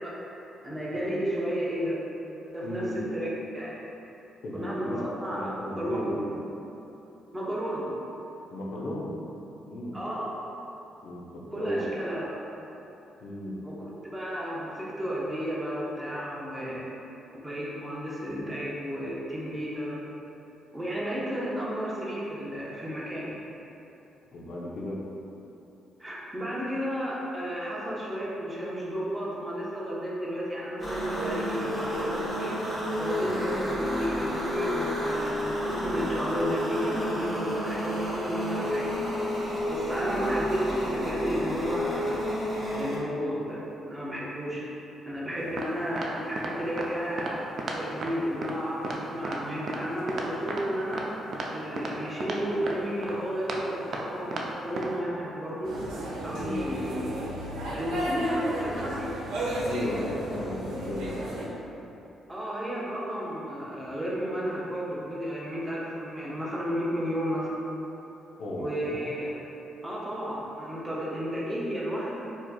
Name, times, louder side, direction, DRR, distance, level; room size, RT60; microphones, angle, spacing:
voice 1, 0.0-2.0 2.5-3.3 3.5-3.7 4.5-6.2 7.3-7.9 9.9-10.4 11.5-12.4 13.6-16.8 17.4-20.0 20.7-23.4 26.0-32.6 33.0-39.0 39.7-42.2 42.7-44.7 45.1-47.4 47.8-51.0 51.5-55.7 56.2-57.3 57.7-59.3 62.3-67.5 68.6-69.4 69.8-72.2, equal, 10° right, -6 dB, 0.8 m, -32 dB
voice 2, 2.6-2.9 4.4-6.3 8.5-9.1 9.7-10.0 11.0-11.8 13.2-13.6 24.3-25.0 33.2-33.4 45.4-45.6 56.3-56.5 59.6-61.3 68.4-69.0, left 1 dB, 70° left, -4 dB, 0.5 m, -35 dB
sound 1, 30.8-43.0, equal, 10° left, 1.4 m, -30 dB
sound 2, 45.6-45.7 46.0-46.1 46.4-46.5 46.8-46.9 47.2-47.3 47.6-47.8 48.0-48.1 48.4-48.5 48.8-49.0 49.2-49.4 49.7-49.8 50.1-50.6 50.9-51.0 51.3-51.5 51.8-51.9 52.2-52.4 52.7-52.8 53.0-53.1 53.5-53.6 53.9-54.0 54.3-54.4 54.8-54.9, right 3 dB, 55° right, 0.4 m, -33 dB
sound 3, 55.6-61.5, right 1 dB, 90° right, 0.7 m, -33 dB
4.3 x 2.7 x 2.3 m, 3.0 s
cardioid pair, 90°, 0 cm